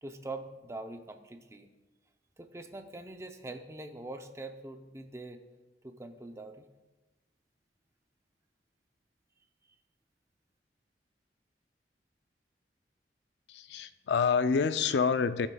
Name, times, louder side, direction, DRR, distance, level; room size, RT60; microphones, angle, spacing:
voice 1, 0.0-1.7 2.4-5.4 5.8-6.7, right 2 dB, 15° right, 6 dB, 0.5 m, -43 dB
voice 2, 13.5-15.5, left 5 dB, 75° left, 12 dB, 0.4 m, -27 dB
15.0 x 7.2 x 2.3 m, 1.1 s
head